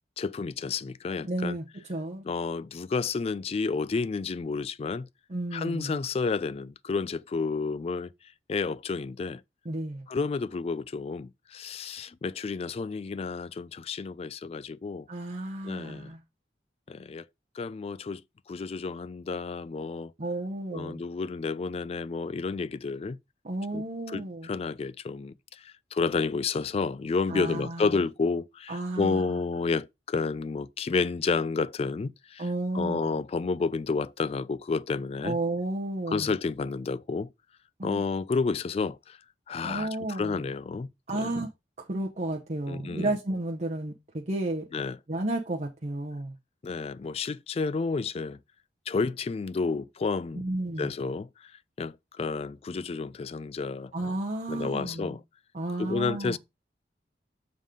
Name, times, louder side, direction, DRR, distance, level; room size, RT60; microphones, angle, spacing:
voice 1, 0.2-1.6 2.3-5.1 5.5-8.1 8.5-9.4 10.1-15.1 15.6-16.1 16.9-17.2 17.6-18.2 18.5-20.1 20.7-23.2 23.7-32.4 32.7-35.4 36.1-37.3 37.8-39.2 39.5-41.3 42.7-43.1 44.7-45.0 46.6-48.4 48.9-50.4 50.8-51.5 51.8-53.9 54.5-55.2 55.8-56.4, left 4 dB, 35° left, 0.3 m, -31 dB
voice 2, 1.2-2.2 5.3-6.0 9.6-10.1 15.1-16.2 20.2-21.0 23.4-24.5 27.3-28.0 28.7-29.4 32.4-33.2 35.2-36.3 37.8-38.0 39.6-40.4 41.1-41.5 41.8-44.7 45.1-46.3 50.3-50.9 53.9-55.2 55.5-56.4, right 2 dB, 40° right, 0.9 m, -32 dB
7.2 x 3.8 x 4.9 m
head